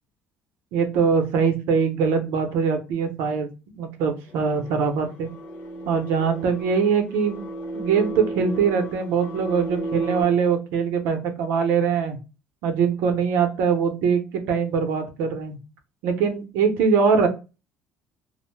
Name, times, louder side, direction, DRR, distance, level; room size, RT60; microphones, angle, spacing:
voice 1, 0.7-3.5 3.8-5.3 5.9-7.4 7.7-12.2 12.6-15.6 16.0-17.3, right 6 dB, 90° right, 6 dB, 0.7 m, -22 dB
sound 1, 4.3-10.2, right 2 dB, 65° left, 0.9 m, -34 dB
2.5 x 2.0 x 3.2 m, 0.30 s
cardioid pair, 165°, 4 cm